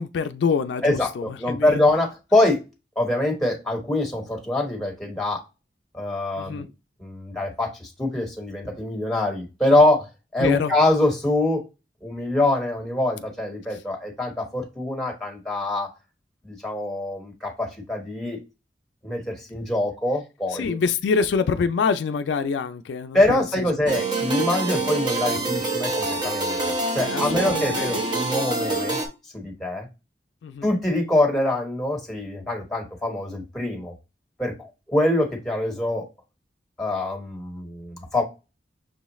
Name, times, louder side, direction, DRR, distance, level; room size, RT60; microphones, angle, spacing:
voice 1, 0.0-1.8 6.4-6.7 10.4-10.7 13.7-13.8 20.5-23.7 27.0-28.0 30.4-30.7, left 5 dB, 80° left, 0.3 m, -26 dB
voice 2, 0.8-2.6 2.9-5.4 5.9-6.7 7.0-10.0 10.3-11.6 12.0-15.9 16.4-18.4 19.0-20.8 23.1-29.0 29.3-29.9 30.6-33.9 34.4-36.1 36.8-38.2, left 1 dB, ahead, 1.3 m, -24 dB
sound 1, 23.9-29.1, right 3 dB, 25° right, 0.8 m, -26 dB
6.2 x 2.3 x 3.0 m
head